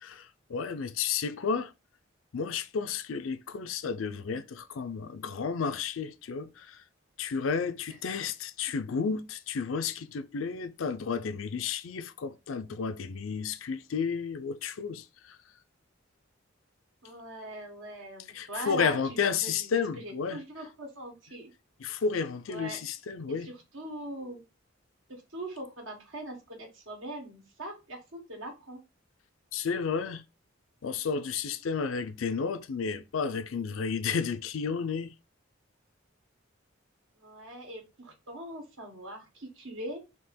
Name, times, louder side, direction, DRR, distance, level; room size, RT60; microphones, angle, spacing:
voice 1, 0.0-1.7 2.3-6.8 7.2-15.4 18.3-20.4 21.8-23.5 29.5-30.2 30.8-35.1, left 6 dB, 85° left, 0.5 m, -32 dB
voice 2, 17.0-21.5 22.5-22.8 23.3-24.4 25.3-28.8 37.2-40.0, right 1 dB, 75° right, 1.6 m, -41 dB
3.7 x 2.9 x 4.3 m
head